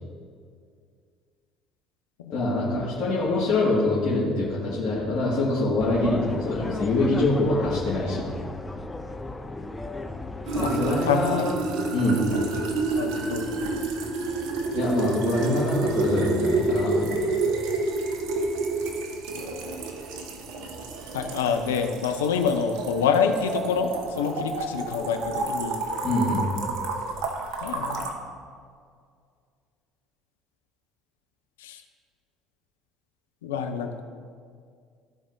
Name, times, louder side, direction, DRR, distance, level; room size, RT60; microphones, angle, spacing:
voice 1, 2.3-8.3 10.5-11.5 11.9-12.3 14.7-17.3 26.0-26.5, left 2 dB, 60° left, -8 dB, 1.9 m, -24 dB
sound 1, 5.8-11.0, left 2 dB, 15° left, 0.7 m, -35 dB
sound 2, 10.5-28.1, right 3 dB, 70° right, 1.0 m, -29 dB
voice 2, 11.1-11.5 12.4-12.5 13.0-13.6 21.1-25.8 27.6-28.1 31.6-31.8 33.4-34.0, left 6 dB, 85° left, 6 dB, 0.6 m, -27 dB
14.5 x 4.9 x 2.7 m, 2.1 s
hypercardioid pair, 65°, 0 cm